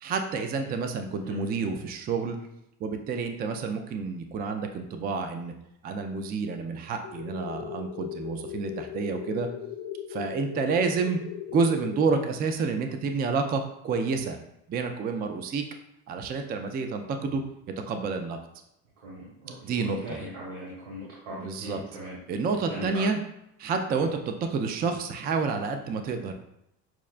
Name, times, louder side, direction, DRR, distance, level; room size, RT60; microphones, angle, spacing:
voice 1, 0.0-2.4 2.8-5.5 5.8-9.5 10.1-11.2 11.5-14.4 14.7-15.7 16.1-17.4 17.9-18.4 19.6-20.2 21.3-21.8 22.3-23.2 23.6-26.3, right 4 dB, 25° right, 6 dB, 0.3 m, -29 dB
sound 1, 7.0-12.1, left 10 dB, 75° left, 0.5 m, -38 dB
voice 2, 19.0-22.2 22.7-23.0, equal, 80° right, -7 dB, 1.2 m, -39 dB
5.9 x 2.2 x 2.4 m, 0.81 s
supercardioid pair, 95°, 37 cm